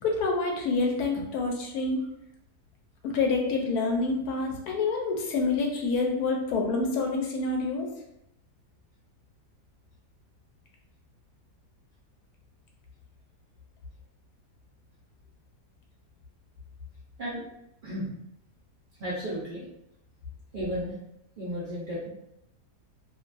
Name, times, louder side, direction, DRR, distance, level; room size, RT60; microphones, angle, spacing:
voice 1, 0.0-2.0 3.0-7.9, left 3 dB, 75° left, 1 dB, 1.1 m, -27 dB
voice 2, 19.0-19.6 20.5-20.9 21.4-22.1, equal, 70° right, -8 dB, 0.4 m, -33 dB
2.8 x 2.2 x 2.5 m, 0.80 s
omnidirectional pair, 1.7 m